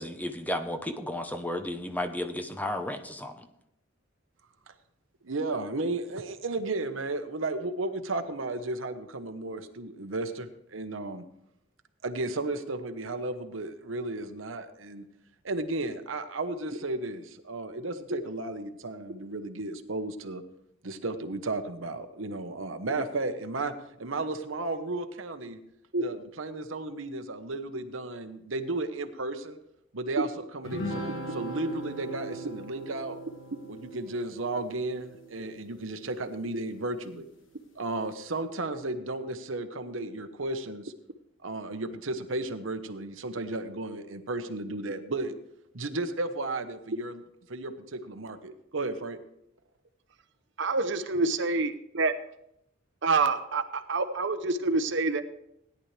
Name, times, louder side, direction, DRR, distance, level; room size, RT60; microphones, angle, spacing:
voice 1, 0.0-3.4, left 1 dB, 10° left, 7 dB, 0.8 m, -33 dB
voice 2, 5.2-11.2 12.0-15.0 15.4-20.4 20.8-23.7 24.0-25.6 26.0-29.6 29.9-33.2 33.7-37.2 37.7-40.9 41.4-45.3 45.7-47.2 47.5-49.2, right 2 dB, 85° right, 8 dB, 1.1 m, -34 dB
sound 1, 30.6-36.3, right 1 dB, 75° left, 1.5 m, -39 dB
voice 3, 50.6-52.1 53.0-55.2, right 3 dB, 65° right, 10 dB, 0.9 m, -27 dB
17.0 x 10.5 x 3.3 m, 0.78 s
head